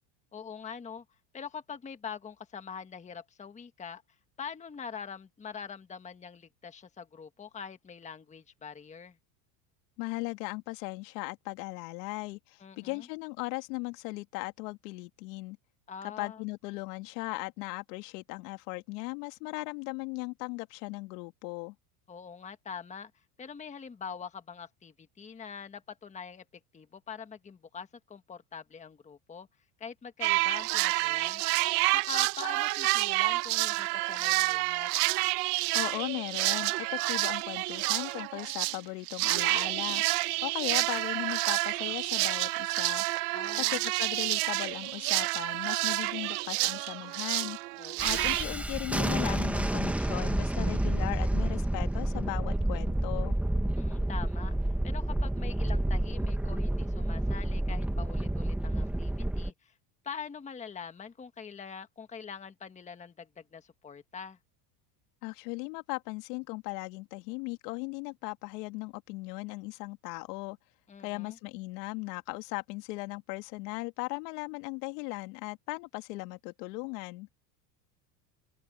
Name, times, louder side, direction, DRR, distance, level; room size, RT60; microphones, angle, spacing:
voice 1, 0.3-1.0 1.3-4.0 4.4-9.2 12.6-13.1 15.9-16.4 22.1-23.1 23.4-26.4 26.7-29.5 29.8-31.4 31.9-34.9 43.3-43.8 47.8-48.4 53.7-54.5 54.8-59.7 60.0-64.4 70.9-71.4, left 6 dB, 15° left, 1.4 m, -44 dB
voice 2, 10.0-15.6 16.2-21.7 35.7-40.0 40.4-43.0 43.6-47.6 48.0-53.4 65.2-70.6 71.0-77.3, left 25 dB, 70° left, 2.5 m, -38 dB
sound 1, 30.2-38.8 39.1-48.4, right 23 dB, 65° right, 1.1 m, -29 dB
Thunderstorm, 48.0-59.5, right 1 dB, 5° right, 1.2 m, -29 dB
open air
supercardioid pair, 140°, 49 cm